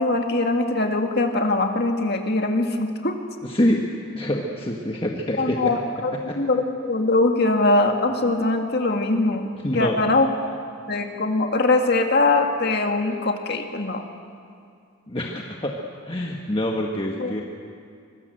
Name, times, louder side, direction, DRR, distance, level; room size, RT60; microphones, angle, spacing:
voice 1, 0.0-3.2 5.4-9.5 9.7-10.3 10.9-14.0 17.2-17.3, left 2 dB, 50° left, 4 dB, 2.0 m, -22 dB
voice 2, 3.4-3.9 4.1-5.7 6.3-6.4 9.6-10.0 15.1-17.4, left 1 dB, 25° left, 0 dB, 1.4 m, -25 dB
24.5 x 21.5 x 8.0 m, 2.3 s
head